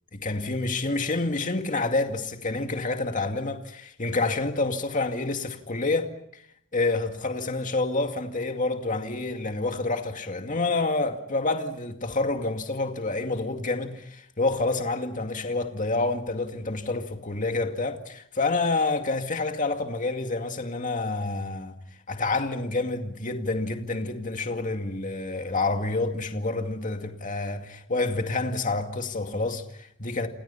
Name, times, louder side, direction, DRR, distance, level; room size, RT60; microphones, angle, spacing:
voice 1, 0.1-6.4 6.7-21.8 22.1-30.3, left 3 dB, 40° left, 2.2 m, -28 dB
29.5 x 27.5 x 5.8 m
head